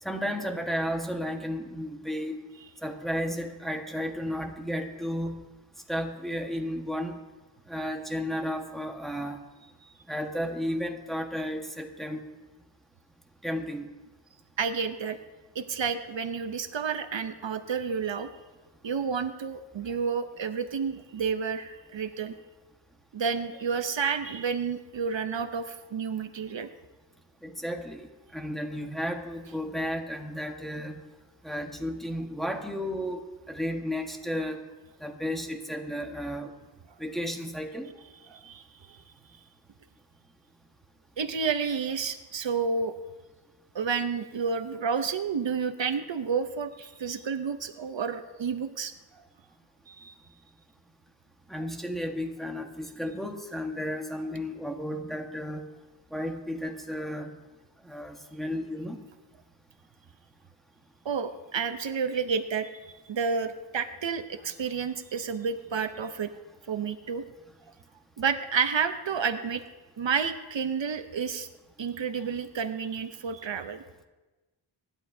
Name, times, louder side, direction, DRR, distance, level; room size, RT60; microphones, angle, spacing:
voice 1, 0.0-2.4 2.8-5.3 5.9-7.2 7.7-9.4 10.1-12.2 13.4-13.9 27.4-31.0 31.4-34.6 35.0-36.5 37.0-37.9 51.5-55.6 56.1-57.4 57.8-59.0, equal, ahead, 2 dB, 1.3 m, -33 dB
voice 2, 14.6-15.2 15.5-18.3 18.8-22.4 23.1-26.7 38.3-39.0 41.2-43.0 43.7-48.9 49.9-50.1 61.0-66.3 66.7-67.2 68.2-69.6 70.0-71.5 71.8-73.8, right 6 dB, 70° right, 10 dB, 0.7 m, -30 dB
25.0 x 11.0 x 2.7 m, 1.2 s
wide cardioid pair, 100°, 47 cm